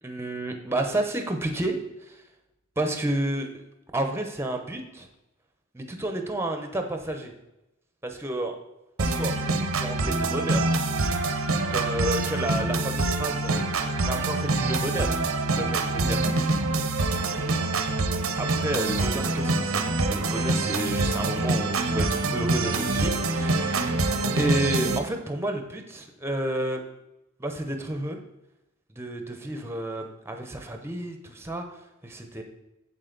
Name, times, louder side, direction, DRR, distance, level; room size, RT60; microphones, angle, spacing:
voice 1, 0.0-2.2 2.8-3.5 3.9-5.1 5.7-7.3 8.0-8.6 9.0-10.7 11.2-11.4 11.7-13.6 14.0-15.2 15.5-16.6 18.4-24.0 24.3-26.8 27.4-28.2 28.9-32.4, right 1 dB, 10° right, 5 dB, 0.8 m, -31 dB
sound 1, 9.0-25.0, right 2 dB, 80° right, 0.8 m, -25 dB
7.9 x 7.4 x 4.0 m, 0.93 s
head